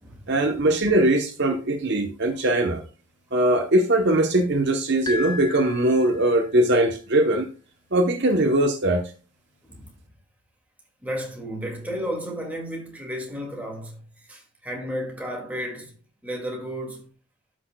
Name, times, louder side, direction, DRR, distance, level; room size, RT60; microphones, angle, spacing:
voice 1, 0.3-2.8 3.3-7.5 7.9-9.1, right 1 dB, 50° right, 0.9 m, -21 dB
sound 1, 5.1-6.6, left 3 dB, 15° left, 0.5 m, -35 dB
voice 2, 9.6-10.0 11.0-17.1, equal, 5° right, 2.0 m, -33 dB
12.5 x 6.1 x 2.2 m
head